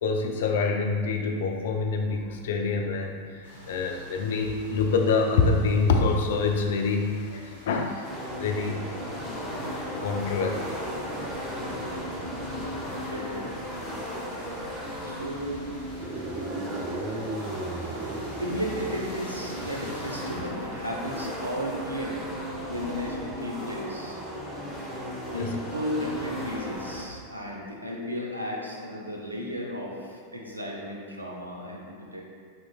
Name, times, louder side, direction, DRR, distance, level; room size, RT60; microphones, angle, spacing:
voice 1, 0.0-8.1 8.4-8.8 10.0-10.7 25.3-25.5, left 4 dB, 60° left, 3 dB, 0.4 m, -26 dB
sound 1, 3.4-20.3, equal, 75° left, 1.4 m, -48 dB
sound 2, 8.0-27.0, equal, 15° left, 0.9 m, -36 dB
voice 2, 12.8-13.5 15.0-15.7 18.4-22.2 22.7-24.2 25.3-32.2, equal, 85° right, -2 dB, 0.6 m, -34 dB
sound 3, 15.9-19.5, right 2 dB, 30° right, 0.4 m, -36 dB
5.4 x 3.0 x 2.3 m, 2.1 s
figure-of-eight pair, 90°, 0 cm